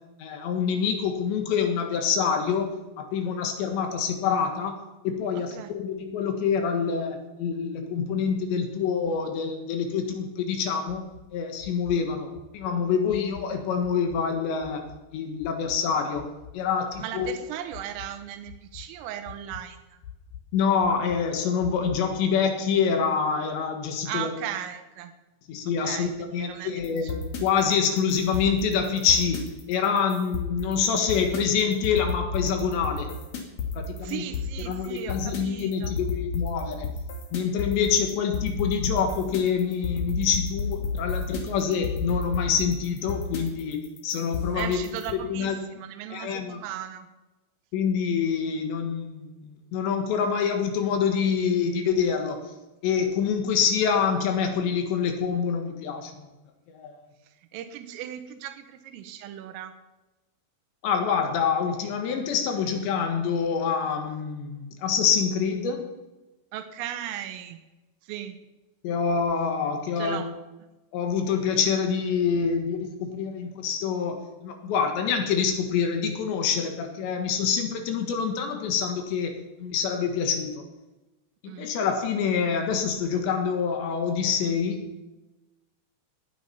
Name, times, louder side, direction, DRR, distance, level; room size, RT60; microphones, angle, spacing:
voice 1, 0.2-2.7 3.0-4.8 5.0-11.1 11.3-16.3 16.5-17.3 20.5-24.3 25.5-33.1 33.7-34.2 34.6-36.9 37.3-44.8 45.1-45.7 46.1-46.6 47.7-52.5 52.8-56.3 56.7-56.9 60.8-66.0 68.8-70.2 70.9-79.3 79.6-80.6 81.4-84.8, left 6 dB, 70° left, 5 dB, 3.5 m, -26 dB
voice 2, 5.4-5.7 17.0-20.0 24.1-25.1 25.8-27.1 34.0-35.9 44.5-47.1 57.5-59.8 66.5-67.6 68.0-68.4 70.0-70.3 81.5-81.7, right 11 dB, 90° right, 8 dB, 3.6 m, -37 dB
sound 1, 10.9-11.3 11.6-12.0 12.3-12.7 13.1-13.5 13.8-14.3 14.6-15.0 15.4-15.8 16.2-16.6 16.9-17.3 17.7-18.2 18.5-18.9 19.2-19.6 20.0-20.4 20.8-21.2 21.6-22.1, left 9 dB, 90° left, 1.6 m, -44 dB
sound 2, 26.8-45.1, left 4 dB, 45° left, 2.5 m, -32 dB
18.5 x 9.8 x 5.7 m, 1.1 s
omnidirectional pair, 5.7 m